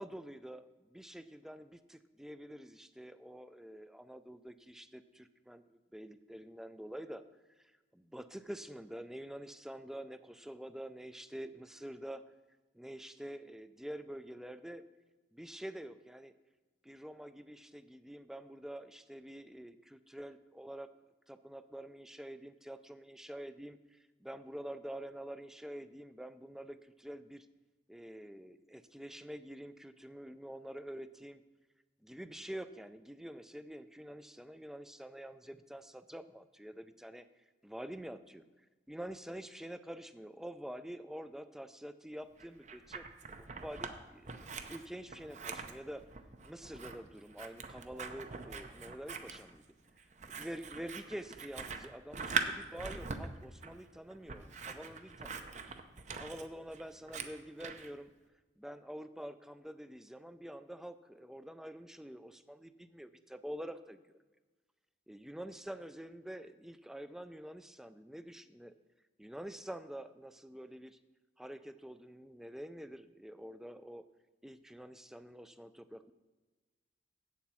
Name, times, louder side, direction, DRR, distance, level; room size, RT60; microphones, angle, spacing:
voice 1, 0.0-7.2 7.6-12.3 12.7-14.8 15.3-16.3 16.8-20.9 21.3-27.5 27.9-31.4 32.0-37.3 37.6-38.4 38.9-43.0 43.4-44.3 44.7-46.1 46.4-49.6 50.4-55.4 56.1-58.1 58.6-64.2 65.1-68.8 69.2-71.0 71.4-74.0 74.4-76.1, equal, 5° right, 12 dB, 0.3 m, -47 dB
Scissors, 42.4-43.9 44.2-57.9, right 5 dB, 40° right, 0.7 m, -42 dB
8.1 x 7.3 x 6.1 m, 1.2 s
head